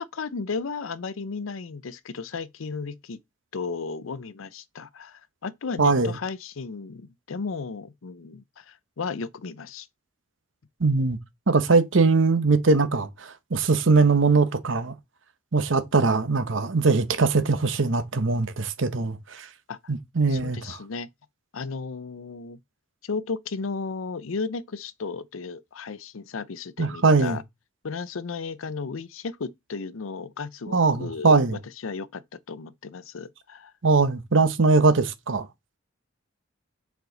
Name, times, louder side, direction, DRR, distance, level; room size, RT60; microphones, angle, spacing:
voice 1, 0.0-3.2 3.5-9.9 19.7-19.8 20.3-21.1 21.5-22.6 23.0-27.4 27.8-31.4 31.8-32.2 32.5-33.7, left 4 dB, 85° left, 0.6 m, -34 dB
voice 2, 5.8-6.2 10.8-11.2 11.5-14.9 15.5-19.5 19.9-20.8 26.8-27.4 30.7-31.6 33.8-35.5, right 3 dB, 70° right, 0.9 m, -21 dB
7.0 x 4.6 x 3.9 m
head